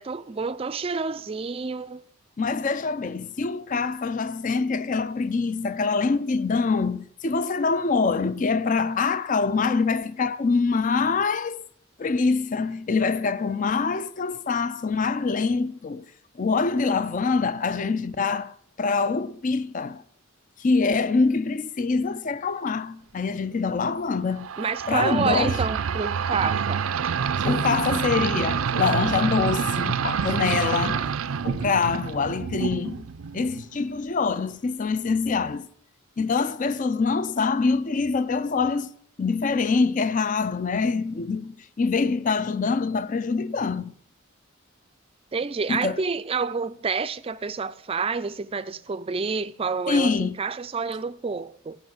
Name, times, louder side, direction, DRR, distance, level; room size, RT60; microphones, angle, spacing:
voice 1, 0.0-2.0 24.6-26.9 45.3-51.8, right 5 dB, 25° right, 0.4 m, -28 dB
voice 2, 2.4-11.6 12.0-16.0 16.4-20.0 20.6-24.5 24.9-25.6 27.4-31.1 31.4-33.1 33.3-35.7 36.2-38.9 39.2-43.9 45.7-46.0 49.9-50.4, left 4 dB, 40° left, 0.4 m, -25 dB
sound 1, 24.4-33.7, right 6 dB, 80° right, 0.5 m, -27 dB
14.5 x 5.6 x 7.7 m
head